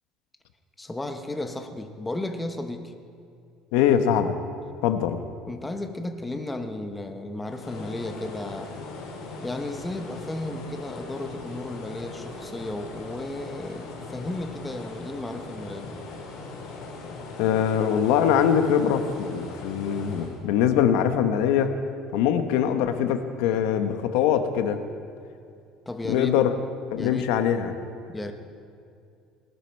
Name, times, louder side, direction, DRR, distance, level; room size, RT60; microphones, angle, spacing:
voice 1, 0.8-2.9 5.5-8.8 9.4-15.9 25.9-26.3 26.9-27.3 28.1-28.3, left 2 dB, 10° left, 6 dB, 0.8 m, -34 dB
voice 2, 3.7-4.4 4.8-5.2 17.4-21.7 22.1-24.8 26.1-26.5 26.9-27.7, left 9 dB, 85° left, 8 dB, 1.0 m, -22 dB
sound 1, 7.5-20.4, left 3 dB, 65° left, 3.3 m, -39 dB
18.5 x 12.5 x 4.5 m, 2.4 s
cardioid pair, 170°, 0 cm